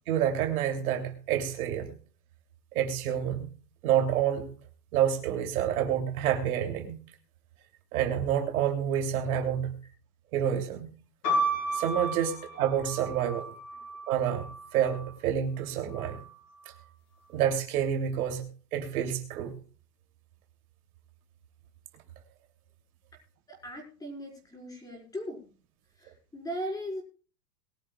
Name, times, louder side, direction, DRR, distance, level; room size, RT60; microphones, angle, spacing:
voice 1, 0.1-1.9 2.7-3.5 3.8-4.5 4.9-7.0 7.9-9.8 10.3-10.9 11.7-13.5 14.1-14.4 14.7-16.2 17.3-18.5 18.7-19.5, right 9 dB, 60° right, 3 dB, 3.0 m, -28 dB
sound 1, 11.2-15.1 15.9-16.6, right 1 dB, 75° left, 5.3 m, -33 dB
voice 2, 23.5-25.4 26.0-27.0, equal, 5° left, 0 dB, 4.7 m, -38 dB
22.0 x 11.5 x 2.3 m, 0.40 s
supercardioid pair, 155°, 48 cm